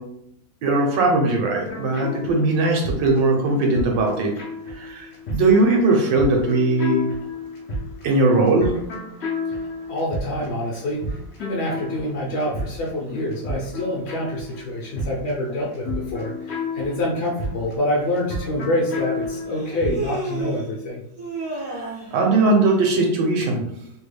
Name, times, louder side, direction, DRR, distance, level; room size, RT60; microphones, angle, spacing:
voice 1, 0.6-4.3 4.7-7.1 8.0-8.7 21.7-23.6, right 2 dB, 75° right, 1 dB, 1.3 m, -19 dB
sound 1, 1.7-20.3, left 2 dB, 85° left, 0.5 m, -32 dB
voice 2, 9.9-21.0, left 1 dB, 70° left, -3 dB, 1.0 m, -26 dB
Human voice, 18.1-18.2 19.5-20.7 21.2-22.2, right 3 dB, 60° right, 0.5 m, -31 dB
3.2 x 2.2 x 3.2 m, 0.75 s
omnidirectional pair, 2.1 m